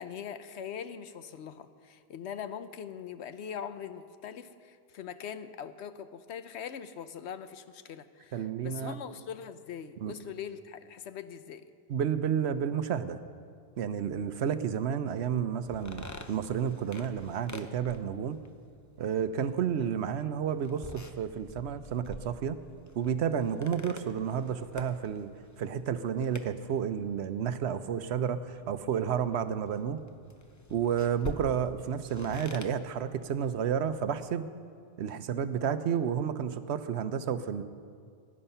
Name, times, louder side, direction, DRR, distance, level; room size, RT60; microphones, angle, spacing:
voice 1, 0.0-11.6, left 8 dB, 90° left, 12 dB, 1.0 m, -42 dB
voice 2, 8.3-8.9 10.0-10.1 11.9-13.2 13.8-18.4 19.0-22.6 22.9-25.3 25.6-30.0 30.7-34.4 35.0-37.6, right 8 dB, 85° right, 11 dB, 1.0 m, -31 dB
sound 1, 15.6-34.2, left 2 dB, 20° left, 0.6 m, -48 dB
19.0 x 9.9 x 5.6 m, 2.3 s
omnidirectional pair, 1.1 m